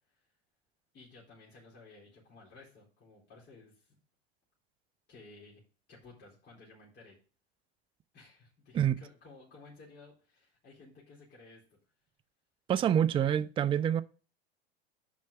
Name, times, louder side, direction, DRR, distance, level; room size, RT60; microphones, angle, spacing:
voice 1, 0.9-4.0 5.1-5.6 5.9-7.2 8.1-11.8 13.1-13.5, left 3 dB, 30° left, 4.2 m, -55 dB
voice 2, 12.7-14.0, right 9 dB, 15° right, 0.4 m, -26 dB
6.3 x 5.7 x 6.7 m
hypercardioid pair, 95°, 32 cm